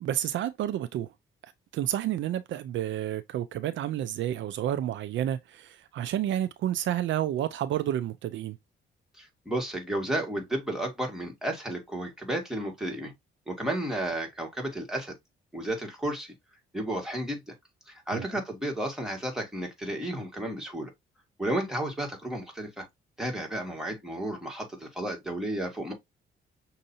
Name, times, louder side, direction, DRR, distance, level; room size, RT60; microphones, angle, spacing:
voice 1, 0.0-1.1 1.7-8.6 18.1-18.3, right 11 dB, 70° right, 0.5 m, -30 dB
voice 2, 9.2-13.1 13.5-15.1 15.5-16.3 16.7-17.4 17.9-20.9 21.4-22.9 23.2-25.9, right 1 dB, ahead, 2.0 m, -32 dB
6.4 x 2.7 x 2.7 m
cardioid pair, 90°, 20 cm